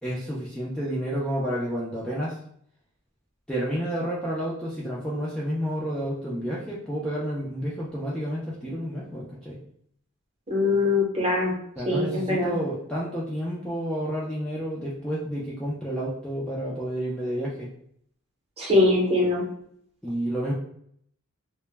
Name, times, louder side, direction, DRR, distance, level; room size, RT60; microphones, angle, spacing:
voice 1, 0.0-2.4 3.5-9.6 11.8-17.7 20.0-20.5, equal, 5° left, -6 dB, 0.3 m, -30 dB
voice 2, 10.5-11.5 11.9-12.5 18.6-19.4, left 2 dB, 30° right, -2 dB, 0.7 m, -22 dB
2.1 x 2.0 x 3.2 m, 0.66 s
head